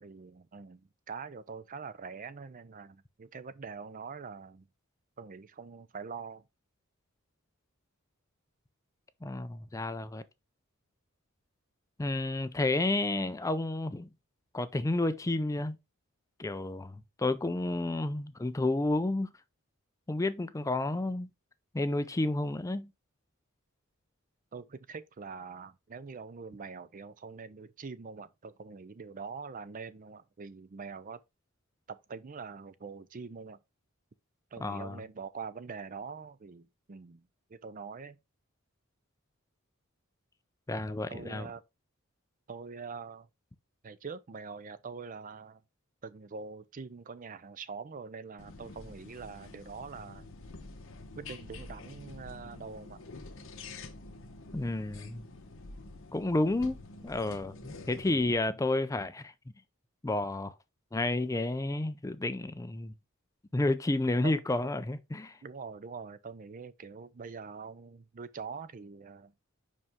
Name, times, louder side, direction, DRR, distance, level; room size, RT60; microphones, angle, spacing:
voice 1, 0.0-4.7 5.2-6.4 24.5-31.2 31.9-33.6 34.5-38.2 41.1-41.6 42.5-43.3 43.8-45.6 46.0-50.2 51.2-53.0 64.2-64.4 65.4-69.3, right 5 dB, 40° right, 0.5 m, -44 dB
voice 2, 9.2-10.2 12.0-14.1 14.5-15.8 16.4-19.3 20.1-21.3 21.7-22.9 34.6-35.0 40.7-41.5 54.5-55.2 56.1-59.3 60.0-60.5 60.9-62.9 63.5-65.4, left 2 dB, 15° left, 0.4 m, -31 dB
sound 1, 48.4-58.3, left 2 dB, 65° left, 1.1 m, -47 dB
5.3 x 5.2 x 3.6 m
head